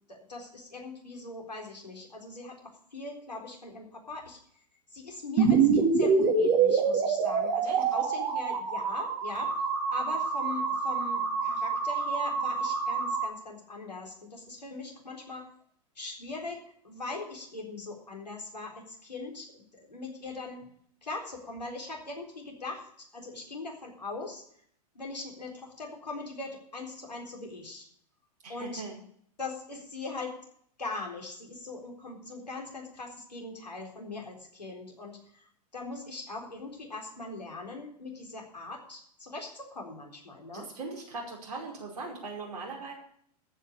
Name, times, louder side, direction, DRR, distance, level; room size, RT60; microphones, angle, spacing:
voice 1, 0.1-4.4 4.9-9.5 9.9-15.4 16.0-20.6 21.0-22.8 23.1-24.4 25.0-27.9 28.5-28.8 29.4-30.3 30.8-35.4 35.7-40.7, left 3 dB, 90° left, 1 dB, 3.9 m, -41 dB
sound 1, 5.4-13.3, right 5 dB, 45° right, 2.8 m, -26 dB
voice 2, 28.4-29.0 40.5-42.9, right 3 dB, 70° right, -1 dB, 5.2 m, -39 dB
14.0 x 5.6 x 8.8 m, 0.63 s
hypercardioid pair, 105°, 20 cm